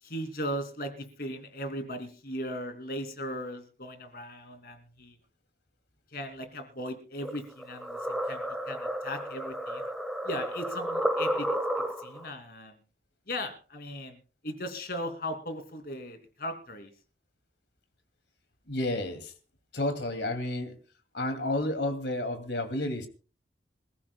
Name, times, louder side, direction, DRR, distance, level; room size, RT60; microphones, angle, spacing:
voice 1, 0.0-5.2 6.1-9.9 10.2-11.5 12.0-12.8 13.3-14.2 14.4-16.9, equal, 55° left, 8 dB, 2.8 m, -38 dB
sound 1, 7.2-12.3, right 1 dB, ahead, 1.4 m, -32 dB
voice 2, 18.7-19.3 19.7-20.7 21.1-23.1, left 1 dB, 75° left, 8 dB, 2.7 m, -31 dB
27.0 x 14.5 x 2.3 m, 0.34 s
head